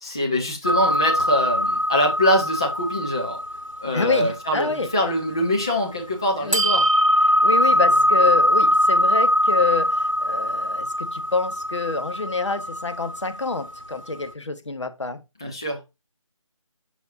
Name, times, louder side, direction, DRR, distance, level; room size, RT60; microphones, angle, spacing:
voice 1, 0.0-3.4 3.8-6.8 7.7-7.8 15.4-15.8, equal, 10° left, 0.6 m, -24 dB
sound 1, 0.6-5.8 6.5-14.0, equal, 70° right, 1.3 m, -22 dB
voice 2, 3.9-4.9 6.4-6.7 7.4-15.2, left 4 dB, 60° left, 1.1 m, -27 dB
7.2 x 5.7 x 2.6 m
figure-of-eight pair, 160°, 17 cm